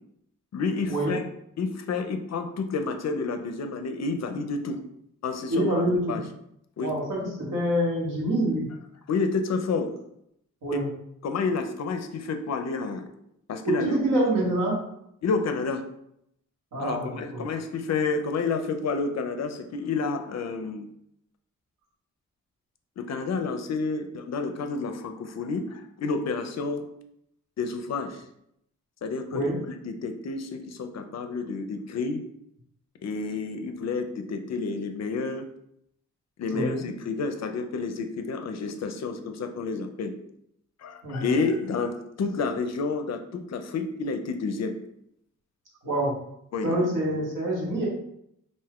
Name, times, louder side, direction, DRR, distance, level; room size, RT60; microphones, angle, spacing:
voice 1, 0.5-1.2 1.6-4.8 5.2-5.8 6.1-6.3 6.8-6.9 9.1-9.9 11.2-13.0 13.5-14.0 15.2-15.8 16.8-20.9 23.0-26.8 27.6-28.2 29.0-29.5 29.8-32.2 33.0-35.4 36.4-40.1 40.8-44.7 46.5-46.9, left 4 dB, 60° left, 6 dB, 0.4 m, -30 dB
voice 2, 5.5-6.2 6.8-8.7 10.6-10.9 13.6-14.8 16.7-17.4 29.3-29.6 36.5-36.8 41.0-41.4 45.8-46.1 46.6-47.9, right 1 dB, 80° right, -5 dB, 1.2 m, -26 dB
2.6 x 2.3 x 3.4 m, 0.75 s
cardioid pair, 60°, 32 cm